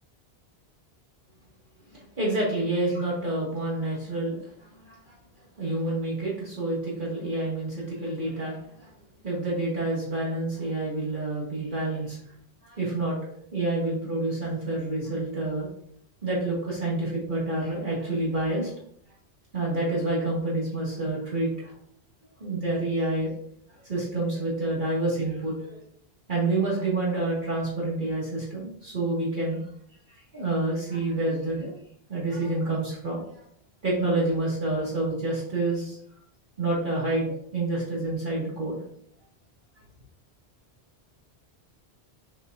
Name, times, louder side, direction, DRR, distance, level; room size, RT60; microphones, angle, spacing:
voice 1, 1.9-5.2 5.6-8.9 9.2-12.2 12.6-13.2 13.5-15.7 16.2-18.7 19.5-21.7 22.4-23.3 23.8-25.8 26.3-29.6 30.1-31.7 32.1-33.4 33.8-36.0 36.6-38.8, right 2 dB, 50° right, -6 dB, 2.2 m, -28 dB
6.7 x 6.1 x 2.6 m, 0.64 s
omnidirectional pair, 1.1 m